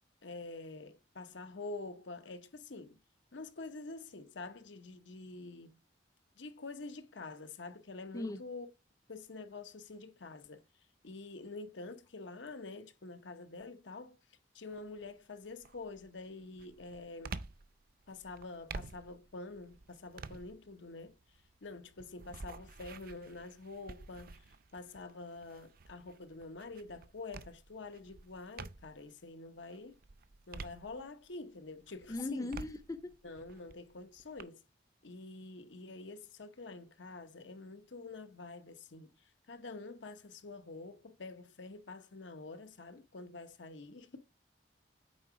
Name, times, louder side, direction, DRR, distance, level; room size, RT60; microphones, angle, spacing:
voice 1, 0.2-3.0 3.3-5.8 6.4-8.7 9.1-10.6 11.0-14.2 14.5-17.4 18.1-21.1 21.6-24.5 24.7-30.0 30.5-32.5 33.2-34.6 35.0-44.2, left 3 dB, 80° left, 0.9 m, -47 dB
sound 1, 14.7-15.1 15.6-29.1 29.6-31.4 31.8-34.4, right 3 dB, 50° right, 0.5 m, -50 dB
voice 2, 32.1-33.0, left 2 dB, 20° left, 0.5 m, -38 dB
8.7 x 3.7 x 4.9 m
head